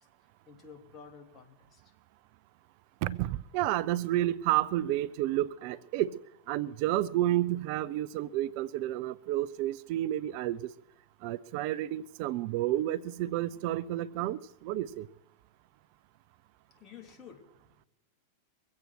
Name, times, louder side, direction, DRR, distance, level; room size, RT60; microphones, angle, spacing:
voice 1, 0.5-1.9 16.7-17.7, left 6 dB, 25° left, 4 dB, 2.7 m, -51 dB
voice 2, 3.0-6.2 6.5-10.7 11.2-15.1, right 14 dB, 50° right, 22 dB, 0.4 m, -30 dB
22.5 x 8.3 x 6.3 m, 0.90 s
hypercardioid pair, 95°, 0 cm